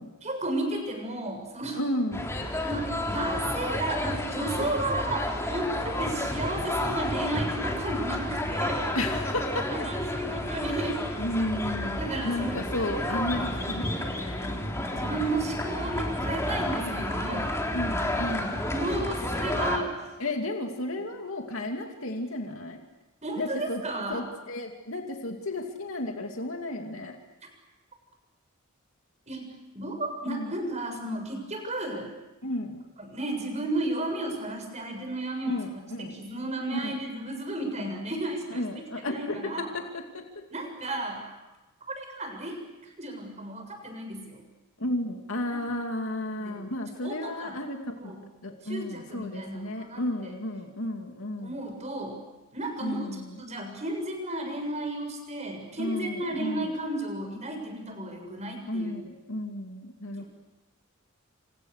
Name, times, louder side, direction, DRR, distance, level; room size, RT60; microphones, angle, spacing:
voice 1, 0.2-1.8 2.6-9.0 9.7-11.0 12.0-12.6 14.9-17.5 18.7-20.0 23.2-24.2 29.3-29.5 29.7-32.1 33.0-35.6 36.0-38.6 39.0-39.7 40.5-41.2 42.0-44.4 45.5-45.6 46.4-46.6 47.0-47.6 48.0-48.2 48.6-50.3 51.4-52.2 52.5-59.0 60.2-60.3, right 2 dB, 35° right, 4 dB, 7.0 m, -33 dB
voice 2, 1.8-2.3 8.9-9.7 11.2-14.6 17.0-18.7 20.2-22.8 23.4-23.8 24.1-27.2 30.3-30.5 31.1-31.3 32.4-32.8 35.5-36.1 36.7-37.0 37.8-37.9 38.5-40.4 44.8-48.1 48.4-51.6 52.8-53.4 55.8-56.7 58.7-60.3, left 1 dB, 70° left, 3 dB, 2.6 m, -33 dB
sound 1, 2.1-19.8, left 1 dB, 15° left, 3.6 m, -31 dB
29.0 x 27.5 x 6.6 m, 1.1 s
head